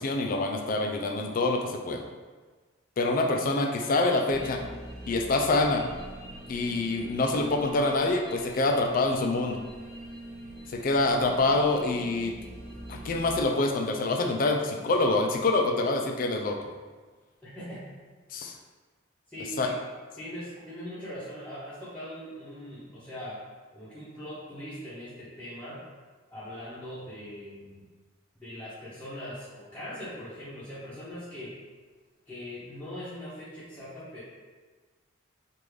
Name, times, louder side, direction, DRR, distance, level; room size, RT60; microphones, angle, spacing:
voice 1, 0.0-2.0 3.0-4.6 5.1-5.8 6.5-9.7 10.7-12.4 12.9-16.7 18.3-18.5 19.6-19.7, left 2 dB, 40° left, 3 dB, 0.3 m, -26 dB
sound 1, 4.3-13.4, right 1 dB, 45° right, 0.7 m, -44 dB
voice 2, 17.4-17.9 19.3-19.7 20.2-23.4 23.7-25.8 26.3-27.8 28.4-31.5 32.3-34.2, equal, 10° left, -13 dB, 0.7 m, -41 dB
3.4 x 2.5 x 3.1 m, 1.4 s
head